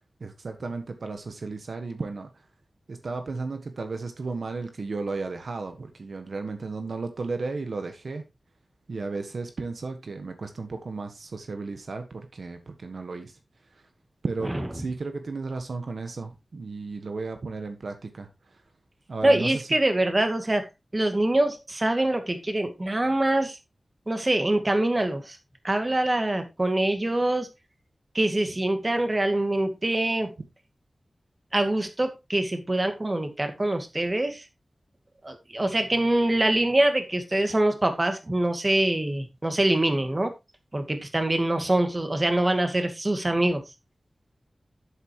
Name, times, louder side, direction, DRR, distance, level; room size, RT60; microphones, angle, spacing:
voice 1, 0.2-2.3 2.9-8.2 8.9-13.4 13.7-13.8 14.2-18.3 19.1-19.7, right 3 dB, 75° right, 1.4 m, -34 dB
voice 2, 19.2-20.7 20.9-23.6 24.1-25.4 25.6-27.5 28.1-30.3 31.5-34.5 35.2-40.3 40.7-43.6, right 1 dB, 30° right, 2.2 m, -24 dB
11.5 x 8.7 x 3.1 m
wide cardioid pair, 95°, 0 cm